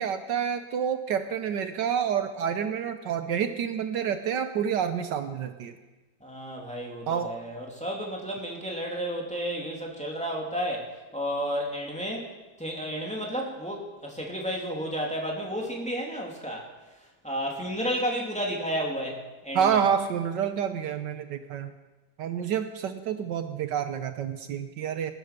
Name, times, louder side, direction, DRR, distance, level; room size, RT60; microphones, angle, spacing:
voice 1, 0.0-5.8 7.1-7.3 19.5-21.7 22.2-25.1, right 8 dB, 75° right, 9 dB, 1.4 m, -28 dB
voice 2, 6.2-12.3 12.6-16.6 17.2-19.8, equal, 5° left, -1 dB, 2.6 m, -32 dB
20.0 x 10.0 x 6.7 m, 1.2 s
omnidirectional pair, 2.0 m